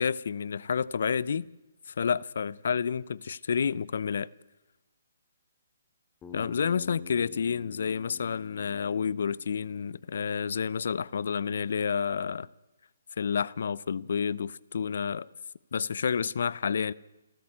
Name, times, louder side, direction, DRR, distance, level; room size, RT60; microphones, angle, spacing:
voice 1, 0.0-1.5 1.9-4.3 6.3-12.5 13.2-15.3 15.7-16.9, left 6 dB, 65° left, 0.7 m, -29 dB
Bass guitar, 6.2-10.5, left 7 dB, 15° left, 2.4 m, -49 dB
28.0 x 13.5 x 9.0 m
hypercardioid pair, 155°, 0 cm